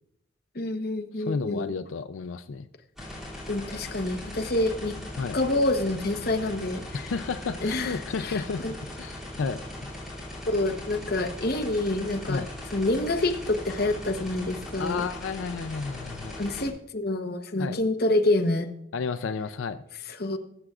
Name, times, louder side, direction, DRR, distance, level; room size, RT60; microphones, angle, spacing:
voice 1, 0.5-1.7 3.5-4.9 5.3-7.1 7.6-8.0 8.2-8.7 10.5-12.4 12.7-15.0 16.4-18.7 20.2-20.4, left 2 dB, 50° left, 6 dB, 1.0 m, -27 dB
voice 2, 1.1-2.7 5.2-5.4 6.9-8.6 9.0-10.0 12.3-12.5 14.8-16.4 17.6-17.8 18.9-19.8, left 4 dB, 85° left, 11 dB, 0.4 m, -32 dB
sound 1, 3.0-16.7, left 1 dB, ahead, 2.7 m, -39 dB
20.0 x 7.8 x 2.4 m, 0.78 s
head